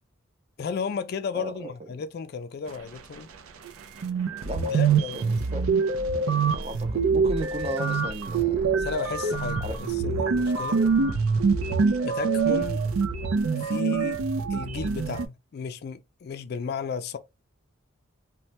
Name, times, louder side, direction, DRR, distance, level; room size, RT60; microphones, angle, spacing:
voice 1, 0.6-3.3 4.7-5.3 8.8-10.8 12.0-12.8 13.6-14.2 14.5-17.2, left 5 dB, 50° left, 0.3 m, -34 dB
voice 2, 1.3-1.7 4.4-5.9 6.2-8.7 9.6-9.8, right 1 dB, 30° right, 0.4 m, -36 dB
sound 1, 3.7-3.8 4.0-15.3, right 5 dB, 85° right, 0.4 m, -25 dB
3.1 x 2.1 x 2.7 m
head